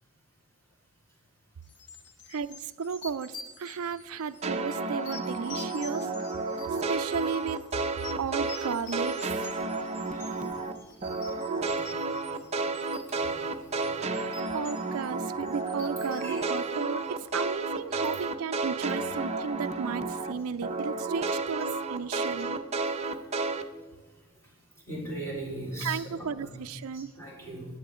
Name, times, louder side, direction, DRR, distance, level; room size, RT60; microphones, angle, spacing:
sound 1, 1.7-17.5, left 5 dB, 50° left, 1.3 m, -48 dB
voice 1, 2.3-6.1 6.9-7.6 8.2-9.5 14.3-22.6 25.8-27.1, right 6 dB, 75° right, 10 dB, 0.4 m, -34 dB
sound 2, 4.4-10.7 11.0-20.3 20.6-23.6, right 3 dB, 30° right, 0.7 m, -31 dB
voice 2, 24.9-26.5 27.2-27.7, right 1 dB, 10° left, -4 dB, 4.3 m, -37 dB
16.0 x 10.5 x 3.7 m, 1.3 s
head